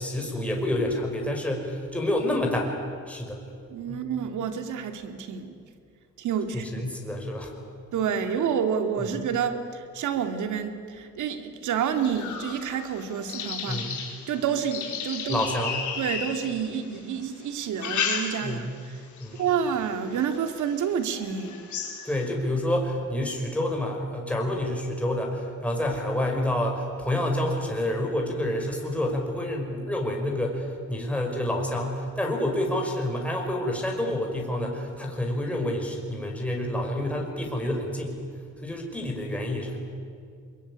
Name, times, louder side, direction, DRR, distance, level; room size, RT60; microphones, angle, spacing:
voice 1, 0.0-2.7 3.1-3.4 3.9-4.1 6.5-7.5 13.7-13.9 15.3-15.8 18.4-18.6 19.2-19.4 22.0-38.2 38.6-39.8, left 1 dB, 5° left, 1 dB, 5.5 m, -28 dB
voice 2, 3.7-5.5 6.2-6.9 7.9-13.8 14.3-15.5 16.0-19.0 19.4-21.6, right 7 dB, 75° right, 7 dB, 2.4 m, -29 dB
sound 1, 12.0-17.0 17.6-18.8 19.2-19.6 20.2-20.3 20.7-20.8 21.2-22.2, left 6 dB, 75° left, 4.3 m, -34 dB
24.0 x 22.0 x 9.8 m, 2.2 s
cardioid pair, 90°, 30 cm